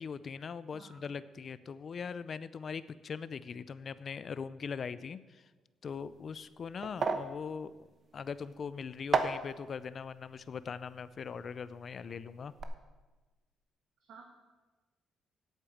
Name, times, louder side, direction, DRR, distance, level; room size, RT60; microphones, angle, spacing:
voice 1, 0.0-5.5 5.8-7.9 8.1-12.5, left 6 dB, 50° left, 16 dB, 0.5 m, -41 dB
voice 2, 0.7-1.0 14.0-14.3, right 5 dB, 75° right, 2 dB, 1.4 m, -53 dB
sound 1, 5.9-12.1 12.4-12.6, right 5 dB, 50° right, 1.0 m, -37 dB
8.6 x 8.2 x 7.2 m, 1.2 s
cardioid pair, 90°, 0 cm